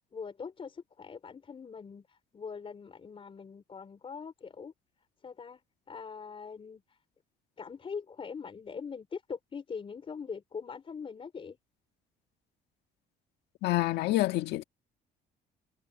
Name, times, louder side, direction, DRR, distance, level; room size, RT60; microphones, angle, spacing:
voice 1, 0.0-4.7 5.2-5.6 5.9-7.0 7.6-11.6, left 6 dB, 35° left, 4.3 m, -42 dB
voice 2, 13.6-14.6, left 16 dB, 80° left, 1.8 m, -27 dB
cardioid pair, 110°, 17 cm